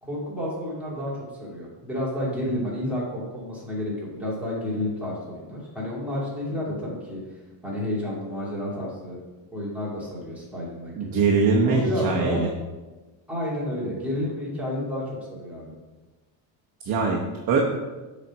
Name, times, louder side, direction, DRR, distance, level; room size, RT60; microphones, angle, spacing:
voice 1, 0.0-7.2 7.6-9.2 9.5-11.2 11.6-12.4 13.3-15.0 15.3-15.7, left 1 dB, 5° right, -7 dB, 2.6 m, -30 dB
voice 2, 11.0-12.5 16.8-17.2 17.5-17.6, right 4 dB, 45° right, 0 dB, 1.0 m, -22 dB
7.5 x 4.3 x 6.1 m, 1.2 s
cardioid pair, 150°, 46 cm